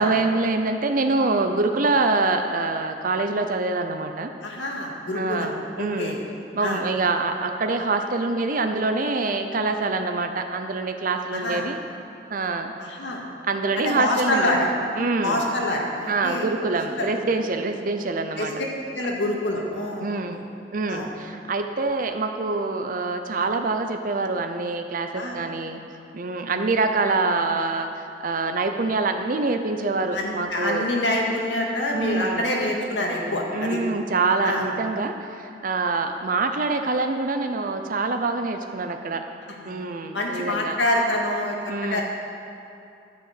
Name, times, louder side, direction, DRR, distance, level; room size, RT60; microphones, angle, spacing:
voice 1, 0.0-4.3 5.1-6.2 6.6-11.8 12.3-12.7 13.4-14.5 15.0-15.5 16.1-18.5 20.0-20.4 20.7-25.8 26.1-30.9 31.9-32.5 33.5-39.2 39.7-40.8 41.7-42.0, right 3 dB, 50° right, 6 dB, 0.6 m, -25 dB
voice 2, 4.4-5.5 5.8-6.2 6.6-6.8 11.3-11.6 12.8-13.2 13.9-14.7 15.2-16.5 17.0-17.1 18.4-18.7 18.9-20.4 20.9-21.1 25.1-25.4 30.1-33.8 34.4-34.6 39.5-39.8 40.1-42.0, left 1 dB, 85° left, -1 dB, 2.0 m, -26 dB
12.0 x 6.5 x 8.1 m, 2.6 s
head